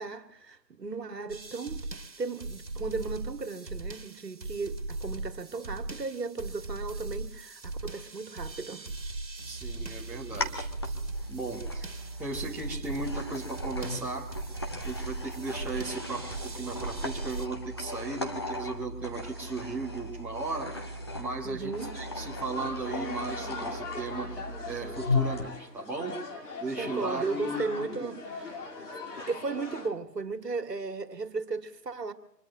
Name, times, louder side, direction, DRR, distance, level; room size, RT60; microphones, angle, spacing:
voice 1, 0.0-1.8 2.2-8.8 21.4-21.9 26.8-28.4 29.3-32.1, right 4 dB, 75° right, 1.9 m, -35 dB
sound 1, 1.3-17.5, right 2 dB, 90° right, 1.7 m, -39 dB
sound 2, 9.4-25.4, left 2 dB, 15° left, 0.6 m, -37 dB
voice 2, 9.4-10.9 11.3-11.8 12.2-14.3 14.8-26.2 26.6-28.1, right 3 dB, 5° right, 1.3 m, -36 dB
sound 3, 21.8-29.9, left 3 dB, 65° left, 3.4 m, -40 dB
25.5 x 21.0 x 2.7 m
figure-of-eight pair, 145°, 50 cm